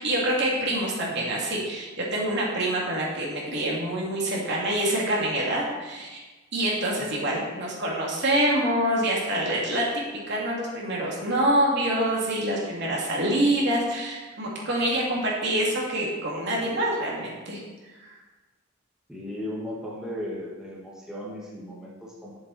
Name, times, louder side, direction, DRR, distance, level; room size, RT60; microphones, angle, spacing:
voice 1, 0.0-6.2 6.5-17.6 18.0-18.1, right 1 dB, 60° right, -4 dB, 2.8 m, -26 dB
voice 2, 19.1-22.4, left 1 dB, 5° right, -6 dB, 1.8 m, -36 dB
10.5 x 7.5 x 4.3 m, 1.2 s
head